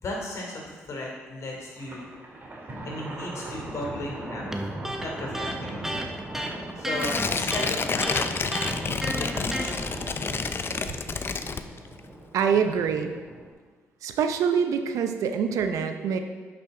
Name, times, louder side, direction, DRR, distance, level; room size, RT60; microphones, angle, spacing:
voice 1, 0.0-2.1 2.8-4.5 5.0-5.8 6.7-8.5 9.0-9.9, left 2 dB, 65° left, -1 dB, 2.8 m, -35 dB
Thunder, 1.7-13.5, right 1 dB, 40° right, 2.4 m, -39 dB
Electric guitar, 4.5-9.8, right 1 dB, 5° right, 1.1 m, -32 dB
Tearing, 7.0-12.1 12.4-12.5, left 5 dB, 45° left, 0.6 m, -29 dB
voice 2, 12.3-13.1 14.0-16.2, right 7 dB, 80° right, 7 dB, 0.7 m, -25 dB
10.5 x 6.0 x 3.8 m, 1.4 s
supercardioid pair, 60°, 6 cm